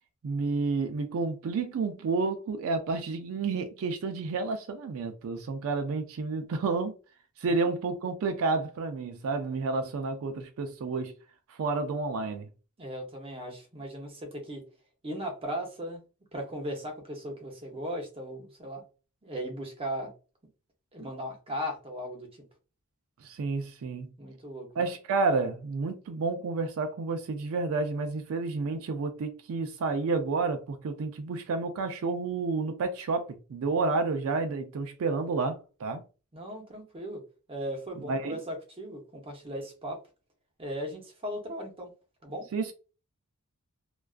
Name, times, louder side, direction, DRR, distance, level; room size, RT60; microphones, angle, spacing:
voice 1, 0.2-6.9 7.4-11.1 11.5-12.5 23.2-24.1 24.8-36.0 38.1-38.4 42.5-42.7, right 4 dB, 65° right, 0.4 m, -30 dB
voice 2, 12.8-14.6 15.0-16.0 16.3-18.8 19.2-20.1 20.9-22.4 24.2-24.7 36.3-37.2 37.5-40.0 40.6-41.9 42.2-42.5, equal, 25° right, 0.6 m, -37 dB
2.3 x 2.3 x 2.3 m
head